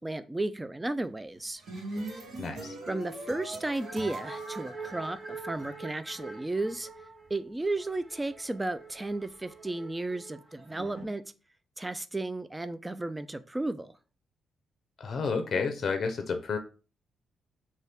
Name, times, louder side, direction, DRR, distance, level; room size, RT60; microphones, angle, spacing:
voice 1, 0.0-1.6 2.9-6.9 7.3-11.2 11.8-13.9, right 2 dB, 15° right, 0.3 m, -34 dB
sound 1, 1.3-5.7, right 1 dB, 75° right, 1.1 m, -41 dB
voice 2, 2.4-2.7 15.0-16.6, left 5 dB, 55° left, 0.5 m, -30 dB
sound 2, 3.8-11.0, right 4 dB, 40° right, 0.8 m, -45 dB
2.6 x 2.3 x 3.4 m
supercardioid pair, 55°, 0 cm